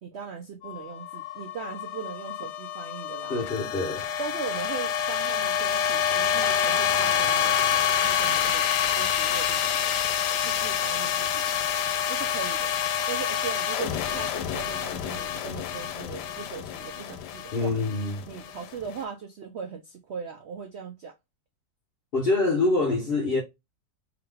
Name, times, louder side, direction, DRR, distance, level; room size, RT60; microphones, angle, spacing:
voice 1, 0.0-3.5 4.2-8.7 9.0-10.0 10.4-11.5 12.1-12.7 13.1-17.7 18.3-21.1, right 6 dB, 85° right, 0.5 m, -39 dB
sound 1, 0.6-18.9, left 8 dB, 75° left, 1.1 m, -27 dB
voice 2, 3.3-4.1 17.5-18.2 22.1-23.4, left 3 dB, 55° left, 0.6 m, -25 dB
3.6 x 2.9 x 3.2 m
omnidirectional pair, 1.9 m